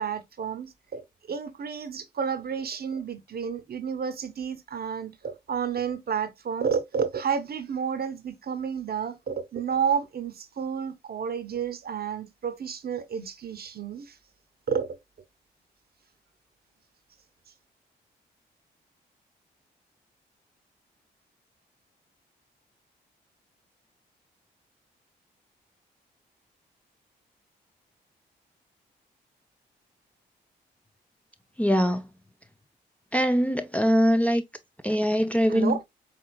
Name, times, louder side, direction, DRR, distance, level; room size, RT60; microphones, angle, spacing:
voice 1, 0.0-14.2 14.7-14.9 35.5-35.8, right 7 dB, 50° right, 0.8 m, -31 dB
voice 2, 31.6-32.1 33.1-34.4 34.8-35.8, equal, 5° left, 0.5 m, -22 dB
4.4 x 3.6 x 2.2 m
supercardioid pair, 45°, 20 cm